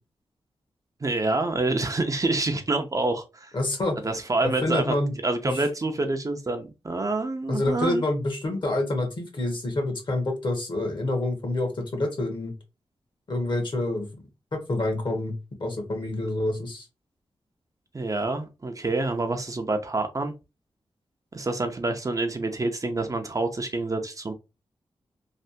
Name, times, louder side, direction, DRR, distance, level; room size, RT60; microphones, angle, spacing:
voice 1, 1.0-3.5 4.0-4.9 5.2-8.0 17.9-20.3 21.3-24.3, right 2 dB, 35° right, 0.6 m, -27 dB
voice 2, 3.5-4.0 4.4-5.1 5.5-5.6 7.5-12.5 13.3-14.2 14.7-15.3 15.6-16.9, left 2 dB, 50° left, 1.4 m, -27 dB
3.3 x 2.4 x 2.7 m
cardioid pair, 65°, 10 cm